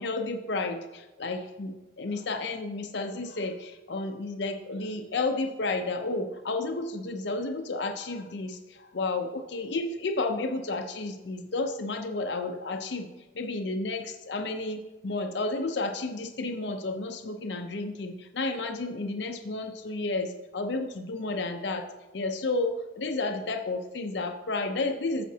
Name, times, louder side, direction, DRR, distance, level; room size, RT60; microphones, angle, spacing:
voice 1, 0.0-13.1 13.3-21.9 22.1-25.2, left 3 dB, 65° left, 6 dB, 0.6 m, -32 dB
13.5 x 5.1 x 2.8 m, 1.1 s
head